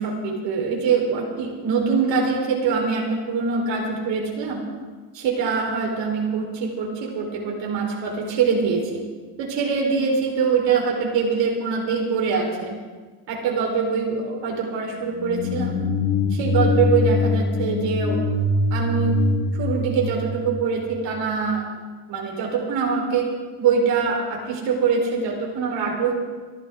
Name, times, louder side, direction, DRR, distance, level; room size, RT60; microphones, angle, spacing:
voice 1, 0.0-4.6 5.1-9.0 9.4-12.7 13.3-15.8 16.3-18.2 18.7-19.2 19.5-21.6 22.1-23.2 23.6-26.1, right 5 dB, 70° right, -1 dB, 4.5 m, -23 dB
sound 1, 15.0-21.1, left 2 dB, 75° left, 2.4 m, -23 dB
24.5 x 12.0 x 3.8 m, 1.4 s
cardioid pair, 120°, 44 cm